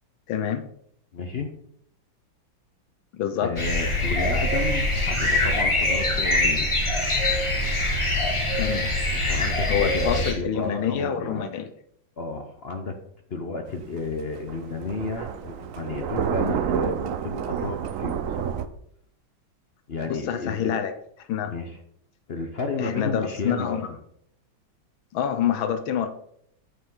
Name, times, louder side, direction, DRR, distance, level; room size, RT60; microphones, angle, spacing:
voice 1, 0.3-0.7 3.1-3.5 8.6-8.9 9.7-11.7 20.0-20.9 21.3-21.5 22.8-23.9 25.1-26.1, left 9 dB, 85° left, 9 dB, 1.5 m, -27 dB
voice 2, 1.1-1.5 3.4-6.7 9.1-11.4 12.2-12.9 13.3-18.5 19.9-20.7 21.4-21.8 22.3-23.8, left 3 dB, 55° left, 5 dB, 0.7 m, -32 dB
sound 1, 3.6-10.3, left 1 dB, 20° left, 1.1 m, -24 dB
Thunder, 13.7-18.7, right 8 dB, 75° right, 0.7 m, -29 dB
8.6 x 7.1 x 3.8 m, 0.69 s
omnidirectional pair, 2.1 m